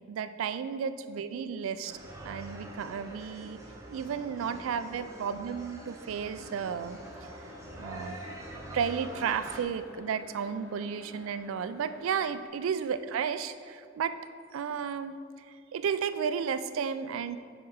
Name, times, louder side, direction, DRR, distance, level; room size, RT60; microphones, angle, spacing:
voice 1, 0.1-2.0 2.2-3.6 3.9-7.0 7.8-8.2 8.7-14.2 14.5-15.2 15.5-17.4, right 7 dB, 85° right, 12 dB, 0.3 m, -33 dB
sound 1, 1.9-9.6, right 1 dB, 15° right, 0.6 m, -45 dB
sound 2, 6.2-12.5, left 4 dB, 85° left, 0.5 m, -52 dB
6.2 x 4.8 x 4.7 m, 2.2 s
head